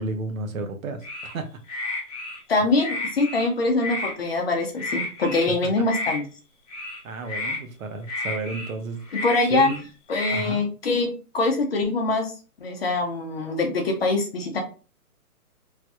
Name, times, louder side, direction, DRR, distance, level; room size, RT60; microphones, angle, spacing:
voice 1, 0.0-1.5 7.0-9.0 9.5-9.8 10.3-10.6, right 3 dB, 60° right, 6 dB, 0.7 m, -32 dB
sound 1, 1.0-1.3 1.7-2.4 2.8-3.5 3.8-4.1 4.8-5.5 5.8-6.2 6.7-7.0 7.3-7.6 8.1-8.7 9.1-9.8 10.1-10.4, left 2 dB, 25° left, 1.0 m, -31 dB
voice 2, 2.5-6.2 9.2-9.7 10.1-12.3 12.6-14.6, left 3 dB, 45° left, 3 dB, 0.6 m, -23 dB
3.2 x 2.8 x 2.2 m, 0.36 s
hypercardioid pair, 160°, 44 cm